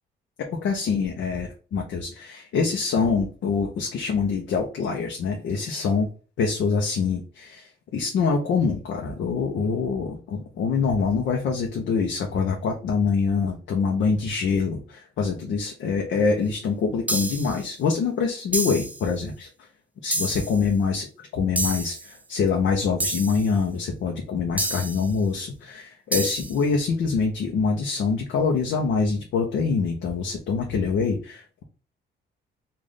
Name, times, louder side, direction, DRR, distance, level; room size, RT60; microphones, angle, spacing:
voice 1, 0.6-6.1 6.4-19.5 20.0-21.1 21.3-31.4, left 5 dB, 70° left, 1 dB, 0.8 m, -25 dB
sound 1, 17.1-17.6 18.5-19.0 20.1-20.6 21.6-22.1 23.0-23.5 24.6-25.1 26.1-26.6, right 2 dB, 10° right, 0.5 m, -28 dB
3.2 x 2.5 x 3.9 m, 0.37 s
cardioid pair, 90°, 20 cm